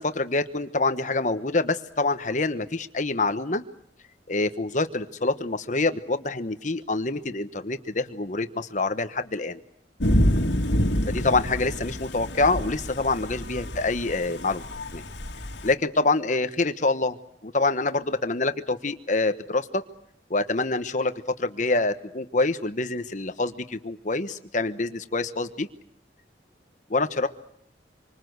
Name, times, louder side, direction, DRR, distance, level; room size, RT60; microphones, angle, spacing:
voice 1, 0.0-3.6 4.3-9.6 11.1-14.6 14.9-15.0 15.6-17.2 17.4-19.8 20.3-21.1 21.4-25.7 26.9-27.3, left 3 dB, 45° left, 9 dB, 1.2 m, -26 dB
Thunder / Rain, 10.0-15.7, equal, 80° left, 2.2 m, -27 dB
27.0 x 25.0 x 8.1 m, 0.68 s
head